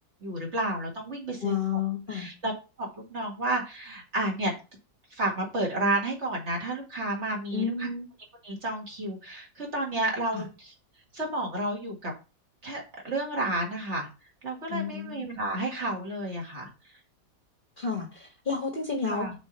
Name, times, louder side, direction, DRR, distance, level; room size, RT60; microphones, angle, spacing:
voice 1, 0.2-1.8 2.1-2.5 2.8-4.5 5.1-7.9 8.4-10.7 11.1-12.1 12.6-14.1 14.4-16.7 19.1-19.3, right 1 dB, 45° right, -1 dB, 2.2 m, -31 dB
voice 2, 1.4-2.3 7.5-8.1 10.3-10.4 14.7-15.3 17.8-19.3, left 6 dB, 35° left, 2 dB, 1.3 m, -31 dB
6.2 x 4.1 x 5.4 m, 0.30 s
omnidirectional pair, 1.8 m